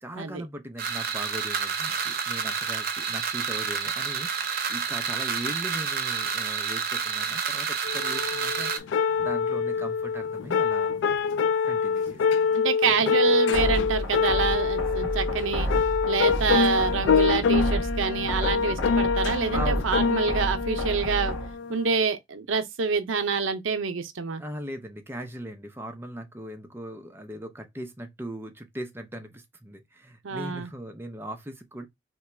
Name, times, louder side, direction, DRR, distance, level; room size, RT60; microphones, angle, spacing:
voice 1, 0.0-8.9 9.2-11.0 11.3-11.4 11.6-13.0 19.5-20.0 24.4-31.9, equal, 10° right, 0.6 m, -39 dB
sound 1, 0.8-8.8, right 6 dB, 50° right, 0.7 m, -29 dB
sound 2, 7.8-21.9, left 6 dB, 65° left, 0.3 m, -25 dB
voice 2, 12.5-15.7 16.1-21.3 21.7-24.4 30.2-30.7, right 5 dB, 85° right, 0.6 m, -26 dB
sound 3, 13.5-21.5, equal, 85° left, 1.0 m, -30 dB
2.9 x 2.3 x 4.2 m
head